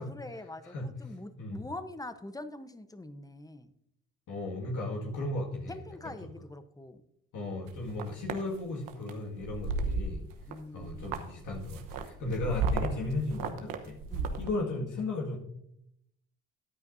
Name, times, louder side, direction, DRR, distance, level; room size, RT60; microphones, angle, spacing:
voice 1, 0.0-3.7 5.7-7.0 10.5-11.2 12.2-12.6 14.1-14.4, left 2 dB, 10° left, 11 dB, 0.9 m, -44 dB
voice 2, 4.3-5.8 6.0-6.1 7.3-10.2 10.7-14.0 14.4-15.4, left 2 dB, 65° left, -1 dB, 2.0 m, -35 dB
sound 1, 7.7-8.4 8.9-9.1 9.4-10.5 10.8-14.5, right 4 dB, 80° right, 1.1 m, -33 dB
13.5 x 9.4 x 2.7 m, 0.77 s
supercardioid pair, 75°, 33 cm